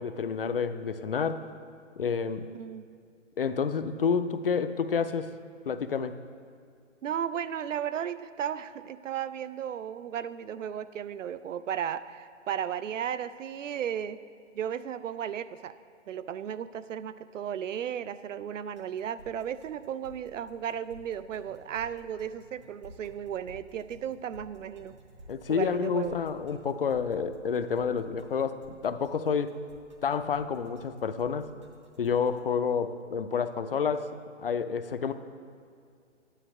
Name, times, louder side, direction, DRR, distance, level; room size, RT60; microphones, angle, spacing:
voice 1, 0.0-1.5 2.0-2.5 3.4-5.3 5.7-6.2 25.3-29.6 30.0-31.5 32.0-34.1 34.4-35.1, left 6 dB, 50° left, 11 dB, 0.4 m, -29 dB
voice 2, 2.5-2.8 7.0-14.2 14.5-15.7 16.1-25.0 25.5-26.2, right 9 dB, 80° right, 14 dB, 0.5 m, -35 dB
sound 1, 18.8-32.4, equal, 25° right, 0.6 m, -53 dB
11.0 x 9.8 x 3.0 m, 2.4 s
hypercardioid pair, 165°, 37 cm